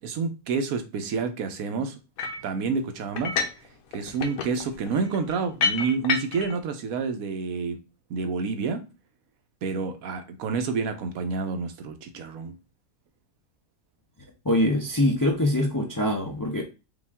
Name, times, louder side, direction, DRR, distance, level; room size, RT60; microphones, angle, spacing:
voice 1, 0.0-1.9 2.4-3.3 3.9-7.8 8.1-8.8 9.6-12.5, right 5 dB, 90° right, 1.1 m, -29 dB
sound 1, 2.2-2.5 3.2-3.7 3.9-6.6, left 5 dB, 85° left, 1.1 m, -29 dB
voice 2, 14.4-16.6, left 1 dB, 25° left, 0.4 m, -23 dB
5.1 x 2.4 x 3.5 m
omnidirectional pair, 1.4 m